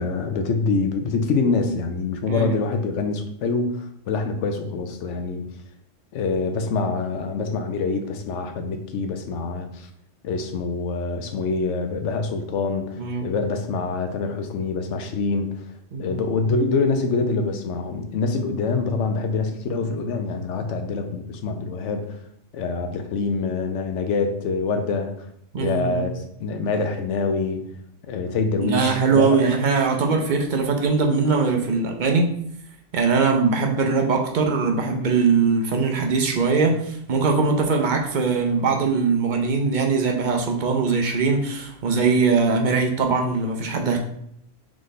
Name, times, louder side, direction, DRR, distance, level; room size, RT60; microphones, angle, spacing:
voice 1, 0.0-3.7 4.1-5.4 6.1-9.9 10.2-12.9 13.2-15.5 16.0-22.1 22.5-25.1 25.6-26.1 26.4-27.6 28.1-29.4, left 4 dB, 70° left, 6 dB, 0.9 m, -25 dB
voice 2, 13.0-13.3 15.9-16.2 25.5-26.1 28.6-32.3 32.9-44.0, right 4 dB, 50° right, 2 dB, 0.6 m, -21 dB
3.7 x 3.2 x 3.9 m, 0.70 s
omnidirectional pair, 1.3 m